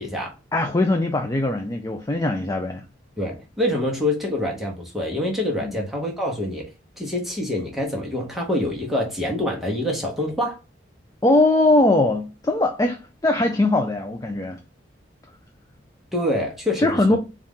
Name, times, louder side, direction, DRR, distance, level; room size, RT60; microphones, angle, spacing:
voice 1, 0.0-0.3 3.2-6.7 7.0-10.6 16.1-17.2, left 1 dB, ahead, 0.9 m, -26 dB
voice 2, 0.5-2.8 5.6-5.7 11.2-14.6 16.8-17.2, left 2 dB, 20° left, 0.4 m, -21 dB
4.1 x 2.5 x 3.6 m
head